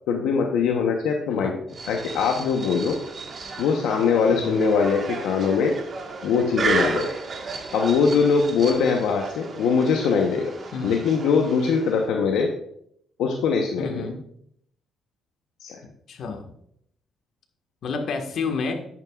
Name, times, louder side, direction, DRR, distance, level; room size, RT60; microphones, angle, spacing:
voice 1, 0.1-1.5 1.9-3.0 3.6-5.8 6.2-7.1 7.7-10.5 10.8-12.5 13.2-14.1 15.6-15.8, left 5 dB, 85° left, 1 dB, 0.9 m, -22 dB
sound 1, 1.7-12.1, right 4 dB, 45° right, 1.5 m, -33 dB
voice 2, 4.3-4.7 10.7-11.0 13.8-14.2 16.1-16.5 17.8-18.7, left 4 dB, 65° left, 4 dB, 1.6 m, -30 dB
10.5 x 9.0 x 2.4 m, 0.70 s
cardioid pair, 90°, 0 cm